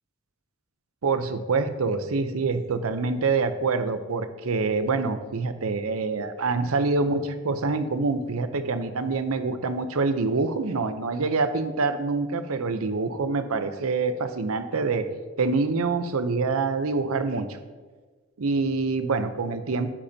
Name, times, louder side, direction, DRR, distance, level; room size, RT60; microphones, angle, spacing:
voice 1, 1.0-15.1 15.4-17.6 18.4-19.9, right 4 dB, 85° right, 10 dB, 0.7 m, -26 dB
10.0 x 8.6 x 2.8 m, 1.4 s
head